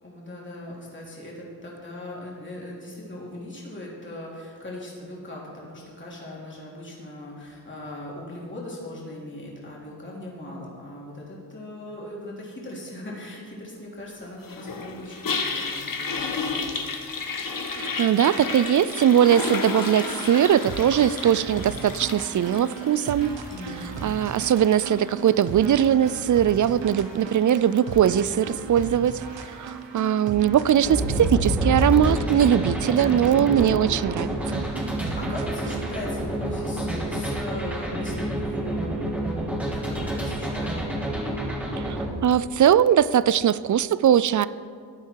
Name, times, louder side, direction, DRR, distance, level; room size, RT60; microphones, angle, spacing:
voice 1, 0.0-16.7 17.9-18.0 23.5-23.9 34.9-40.9, left 1 dB, 25° left, -4 dB, 3.2 m, -39 dB
Toilet flush, 14.4-29.6, left 4 dB, 50° left, 1.4 m, -34 dB
voice 2, 17.7-23.3 24.0-34.6 41.8-44.5, right 9 dB, 45° right, 18 dB, 0.4 m, -21 dB
sound 1, 19.9-36.1, right 6 dB, 75° right, 1.0 m, -37 dB
sound 2, 30.8-42.1, right 1 dB, 5° right, 2.7 m, -28 dB
14.0 x 8.6 x 4.6 m, 2.1 s
cardioid pair, 60°, 44 cm